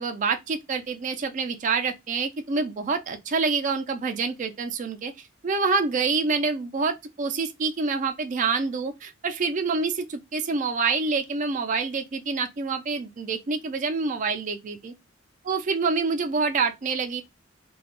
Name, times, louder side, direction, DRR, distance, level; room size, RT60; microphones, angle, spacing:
voice 1, 0.0-5.1 5.4-14.9 15.5-17.2, right 4 dB, 40° right, 0.4 m, -27 dB
2.2 x 2.1 x 2.9 m
head